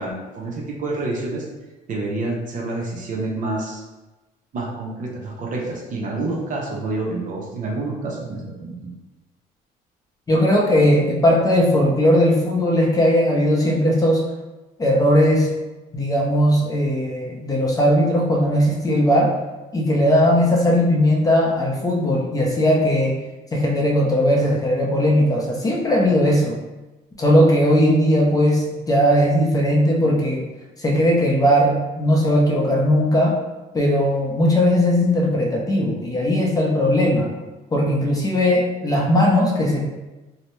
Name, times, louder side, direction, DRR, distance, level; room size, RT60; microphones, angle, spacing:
voice 1, 0.0-1.5 1.9-3.8 4.5-8.9, right 2 dB, 50° right, -1 dB, 0.7 m, -28 dB
voice 2, 10.3-14.2 14.8-15.5 15.9-19.3 19.7-23.2 23.5-26.6 27.2-30.4 30.8-33.4 33.7-37.3 37.7-39.8, equal, 20° left, -2 dB, 0.6 m, -18 dB
2.7 x 2.1 x 3.0 m, 1.1 s
cardioid pair, 110°, 17 cm